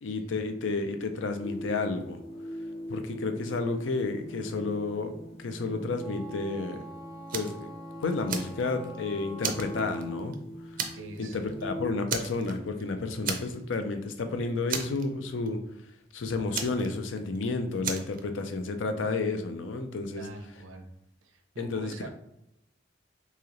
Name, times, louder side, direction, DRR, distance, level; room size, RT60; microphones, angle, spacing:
voice 1, 0.0-2.2 2.9-6.8 7.3-7.7 8.0-10.4 11.2-15.6 16.1-20.3 21.6-22.1, left 3 dB, 75° left, 7 dB, 0.5 m, -31 dB
sound 1, 1.4-11.9, equal, 60° left, 1.0 m, -42 dB
Wind instrument woodwind instrument, 6.0-10.3, right 1 dB, 30° left, 0.7 m, -47 dB
Fire, 7.3-7.6 8.0-9.0 9.4-10.3 10.8-11.2 11.5-11.6 12.1-12.8 13.2-13.8 14.1-14.2 14.7-15.5 16.5-17.4 17.8-18.2, right 6 dB, 45° right, 0.4 m, -34 dB
voice 2, 10.9-11.5 12.9-13.1 20.2-20.9 21.2-22.1, right 2 dB, 90° right, 5 dB, 0.6 m, -44 dB
3.1 x 2.8 x 3.7 m, 0.83 s
head